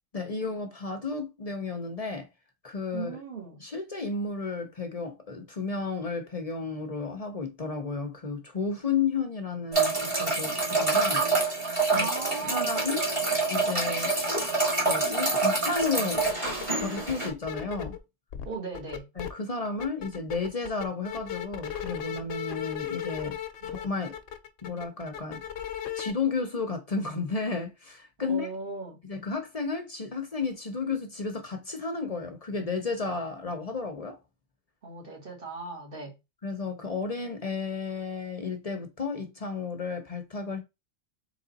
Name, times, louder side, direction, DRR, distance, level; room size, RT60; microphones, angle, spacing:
voice 1, 0.1-2.3 2.6-3.1 3.6-12.1 12.4-13.0 13.5-14.1 14.8-16.3 16.8-18.0 19.2-23.4 23.7-24.1 24.6-25.4 25.9-28.5 29.0-34.2 36.4-40.6, left 4 dB, 40° left, 0.7 m, -32 dB
voice 2, 2.9-3.6 11.9-12.8 18.5-19.1 23.6-23.8 28.3-29.0 34.8-36.1, right 4 dB, 45° right, 1.9 m, -38 dB
sound 1, 9.7-17.3, right 3 dB, 25° right, 1.4 m, -26 dB
sound 2, 15.8-15.9 16.1-18.0 18.3-19.3 19.6-26.1, left 9 dB, 65° left, 0.9 m, -36 dB
3.8 x 3.3 x 3.9 m
omnidirectional pair, 1.3 m